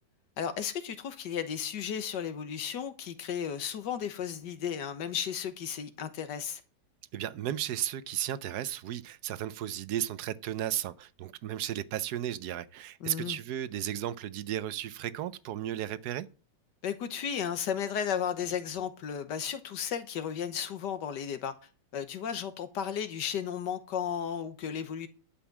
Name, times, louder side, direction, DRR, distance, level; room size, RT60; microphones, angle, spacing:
voice 1, 0.4-6.6 13.0-13.4 16.8-21.5 21.9-25.1, left 8 dB, 70° left, 1.6 m, -34 dB
voice 2, 7.1-16.3, right 11 dB, 70° right, 1.1 m, -34 dB
11.5 x 5.4 x 7.2 m
omnidirectional pair, 1.9 m